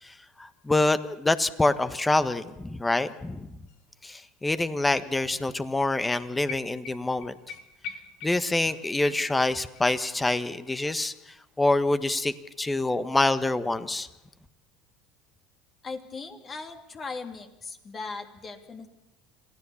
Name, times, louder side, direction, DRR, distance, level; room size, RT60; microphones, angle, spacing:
voice 1, 0.0-3.6 4.0-7.4 8.2-14.1, left 2 dB, 15° left, 13 dB, 1.4 m, -26 dB
sound 1, 3.7-3.8 4.0-5.4 5.7-5.8 6.1-9.8 10.1-10.2, left 6 dB, 65° left, 2.0 m, -43 dB
voice 2, 15.8-19.0, left 4 dB, 30° left, 5 dB, 2.9 m, -38 dB
26.5 x 16.5 x 7.2 m, 0.98 s
hypercardioid pair, 75°, 0 cm